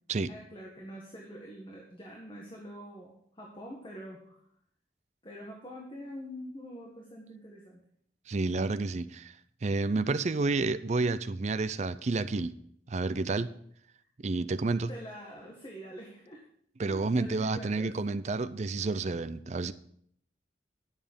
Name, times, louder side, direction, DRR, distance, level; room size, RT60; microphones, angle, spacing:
voice 1, 0.3-4.4 5.2-7.8 14.9-16.4 16.9-17.9, equal, 30° left, 1.6 m, -45 dB
voice 2, 8.3-9.4 9.6-12.5 12.9-13.5 14.2-14.9 16.8-19.7, right 3 dB, 40° right, 0.4 m, -30 dB
11.0 x 7.3 x 5.2 m
head